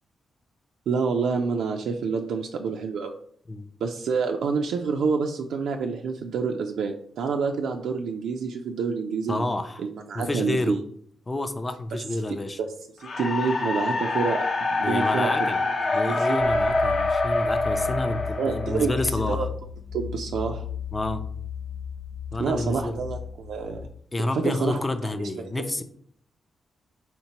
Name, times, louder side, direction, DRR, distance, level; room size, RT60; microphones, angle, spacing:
voice 1, 0.9-3.1 3.8-9.4 9.8-10.8 12.6-12.7 13.0-14.5 14.7-15.7 16.0-16.4 18.4-19.5 19.9-20.6 22.4-23.9 24.3-25.1 25.5-25.6, right 5 dB, 85° right, 3 dB, 0.3 m, -28 dB
voice 2, 9.3-9.8 10.1-10.8 11.3-12.6 14.8-15.6 15.9-19.4 20.9-21.2 22.3-23.0 24.1-25.8, left 2 dB, 20° left, 8 dB, 0.4 m, -29 dB
sound 1, 13.0-19.2, left 2 dB, 50° left, 0.6 m, -25 dB
sound 2, 16.4-23.9, left 8 dB, 70° left, 1.0 m, -35 dB
4.3 x 3.6 x 2.9 m, 0.63 s
cardioid pair, 115°, 0 cm